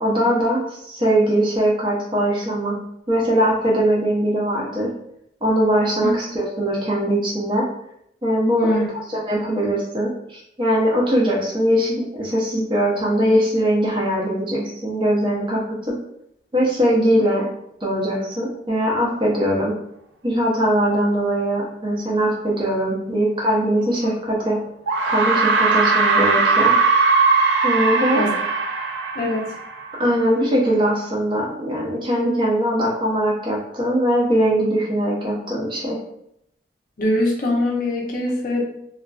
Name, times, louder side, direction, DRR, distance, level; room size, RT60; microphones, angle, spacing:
voice 1, 0.0-2.8 3.1-4.9 5.4-7.7 8.2-8.8 9.1-15.9 16.5-17.5 17.8-19.7 20.2-24.6 25.1-26.7 27.6-28.2 30.0-36.0, equal, 25° right, -3 dB, 0.6 m, -21 dB
voice 2, 8.5-8.9 28.1-28.3 29.1-29.6 37.0-38.6, left 1 dB, 50° left, -2 dB, 0.5 m, -22 dB
sound 1, 24.0-24.1 24.9-30.1, right 4 dB, 70° right, 0.4 m, -19 dB
2.4 x 2.3 x 2.3 m, 0.75 s
head